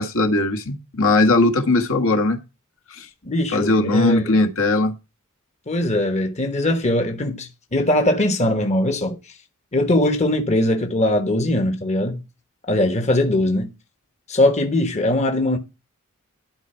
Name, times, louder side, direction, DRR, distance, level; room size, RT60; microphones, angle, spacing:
voice 1, 0.0-2.4 3.0-3.1 3.5-4.9, left 2 dB, 65° left, 1.6 m, -19 dB
voice 2, 3.2-4.4 5.7-9.2 9.7-12.2 12.7-13.7 14.3-15.6, left 1 dB, 30° left, 1.2 m, -21 dB
12.0 x 4.5 x 5.7 m
head